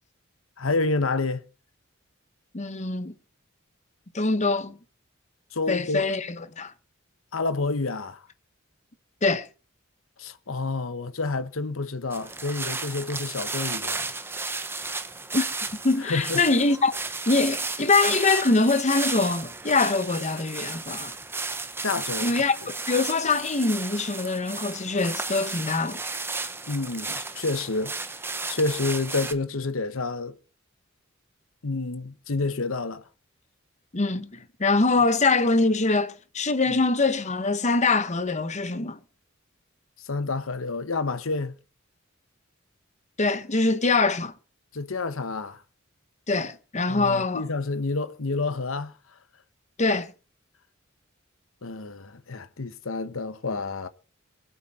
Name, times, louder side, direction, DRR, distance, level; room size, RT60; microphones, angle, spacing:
voice 1, 0.6-1.4 5.5-6.0 7.3-8.3 10.2-14.1 16.0-16.4 21.8-22.4 26.7-28.0 28.5-30.4 31.6-33.0 40.0-41.5 44.7-45.6 46.9-48.9 51.6-53.9, left 3 dB, 75° left, 1.1 m, -29 dB
voice 2, 2.5-3.1 4.1-4.8 5.7-6.7 9.2-9.5 15.3-15.4 15.7-21.1 22.2-22.5 22.9-26.0 33.9-39.0 43.2-44.3 46.3-47.4 49.8-50.1, left 3 dB, 35° left, 1.0 m, -24 dB
sound 1, 12.1-29.3, right 3 dB, 10° right, 0.9 m, -33 dB
23.5 x 8.2 x 4.2 m
head